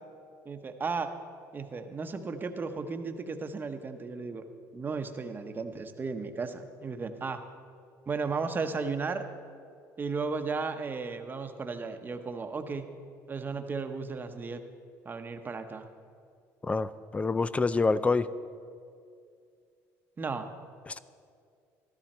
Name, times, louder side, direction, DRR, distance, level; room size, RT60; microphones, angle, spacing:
voice 1, 0.4-1.1 1.5-4.4 4.7-7.4 8.1-9.2 10.0-12.9 13.3-14.6 15.0-15.9 20.2-20.5, right 4 dB, 30° right, 7 dB, 1.0 m, -34 dB
voice 2, 16.6-18.3 20.9-21.0, left 3 dB, 20° left, 16 dB, 0.4 m, -27 dB
13.5 x 13.0 x 4.4 m, 2.3 s
supercardioid pair, 90°, 7 cm